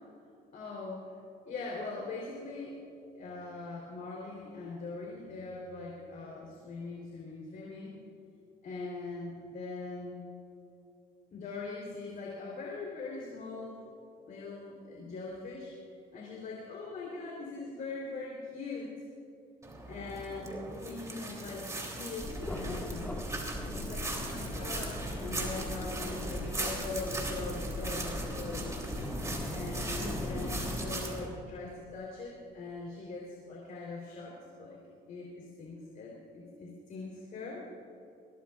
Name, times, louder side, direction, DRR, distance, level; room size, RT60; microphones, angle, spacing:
voice 1, 0.5-0.9 1.5-2.8 3.1-7.9 8.6-10.2 11.3-13.8 14.3-18.9 19.8-23.0 23.6-28.8 29.5-34.8 35.1-37.7, left 3 dB, 55° left, -3 dB, 3.7 m, -41 dB
sound 1, 19.6-31.3, right 2 dB, 20° right, 3.1 m, -39 dB
sound 2, 22.2-30.9, left 1 dB, 10° left, 1.8 m, -38 dB
22.0 x 17.5 x 2.5 m, 2.7 s
cardioid pair, 110°, 17 cm